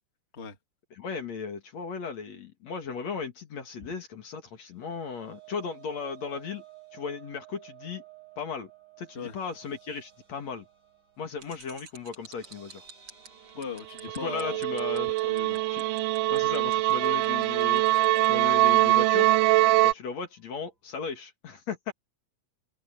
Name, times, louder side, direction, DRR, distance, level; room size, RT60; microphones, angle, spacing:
voice 1, 1.0-6.6 6.9-8.0 8.4-8.7 9.0-10.6 11.2-12.8 14.2-15.1 15.7-15.8 16.3-17.8 18.2-19.4 19.8-21.9, left 5 dB, 55° left, 3.2 m, -36 dB
sound 1, 4.6-18.9 19.2-19.4 19.7-19.9, right 12 dB, 70° right, 6.8 m, -55 dB
sound 2, 11.4-18.3, right 6 dB, 40° right, 3.1 m, -50 dB
voice 2, 13.5-14.6 15.2-15.6, left 5 dB, 20° left, 2.3 m, -38 dB
sound 3, 14.0-19.9, right 17 dB, 85° right, 2.3 m, -23 dB
omnidirectional pair, 3.8 m